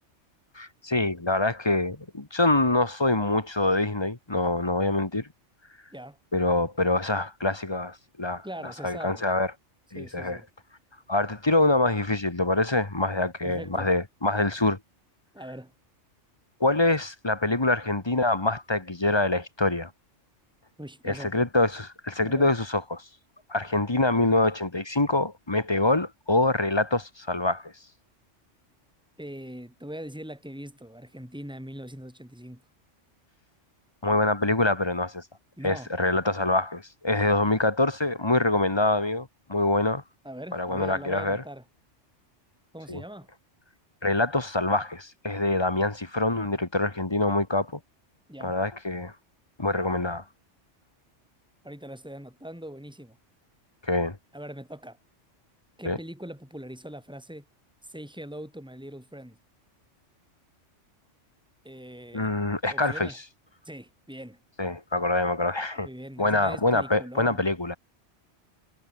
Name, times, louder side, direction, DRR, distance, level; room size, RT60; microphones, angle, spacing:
voice 1, 0.5-5.3 6.3-9.5 9.9-10.4 11.1-14.8 16.6-19.9 21.0-23.0 23.5-27.7 34.0-35.2 35.6-40.0 40.5-41.4 42.9-43.0 44.0-47.7 48.4-49.1 49.6-50.2 53.8-54.2 55.8-56.0 62.1-63.1 64.6-65.9 66.2-67.8, left 2 dB, 20° left, 1.6 m, -25 dB
voice 2, 8.4-9.2 9.9-10.5 13.4-13.9 15.3-15.7 20.8-21.3 22.2-22.5 29.2-32.6 35.6-35.9 40.2-41.6 42.7-43.3 48.3-48.6 51.6-53.2 54.3-55.0 55.8-57.4 57.8-59.4 61.6-62.3 62.7-63.2 63.6-64.4 65.8-67.4, equal, 5° right, 5.9 m, -41 dB
omnidirectional pair, 1.3 m